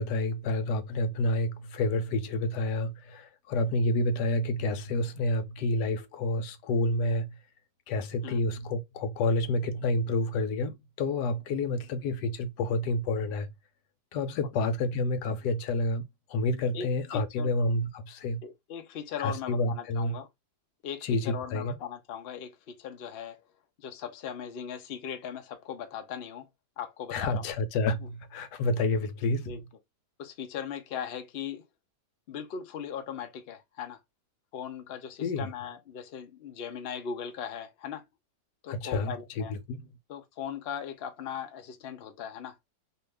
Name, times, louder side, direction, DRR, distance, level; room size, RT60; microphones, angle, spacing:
voice 1, 0.0-7.3 7.9-13.5 14.1-16.0 16.3-18.4 19.2-20.2 21.0-21.8 27.1-29.6 35.2-35.5 38.7-39.9, left 2 dB, 85° left, 1.2 m, -29 dB
voice 2, 16.7-17.5 18.4-20.3 20.8-23.4 23.8-26.5 26.8-27.4 29.5-29.6 30.2-31.6 32.3-34.0 34.5-38.0 38.6-39.5 40.1-42.6, left 8 dB, 60° left, 0.6 m, -38 dB
2.8 x 2.6 x 3.2 m
omnidirectional pair, 1.7 m